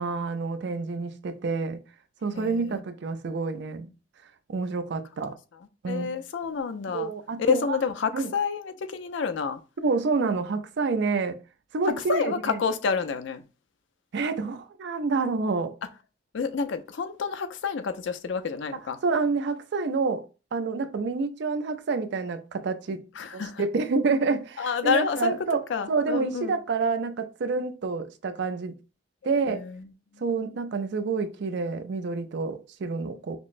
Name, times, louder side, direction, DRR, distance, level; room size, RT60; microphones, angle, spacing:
voice 1, 0.0-1.8 2.2-3.9 4.5-5.3 5.8-6.2 6.9-7.6 8.1-8.3 9.8-11.4 11.7-12.3 14.1-15.7 19.0-20.2 20.5-23.1 23.3-25.6 25.9-28.8 29.2-29.6 30.2-33.4, right 4 dB, 60° right, 0.4 m, -28 dB
voice 2, 2.3-2.8 5.3-5.4 5.9-7.1 7.4-9.6 12.1-13.4 16.3-19.0 23.1-23.7 24.6-25.3 25.7-26.6 29.5-29.9 30.1-30.4, left 5 dB, 70° left, 0.4 m, -29 dB
5.9 x 2.0 x 2.5 m
head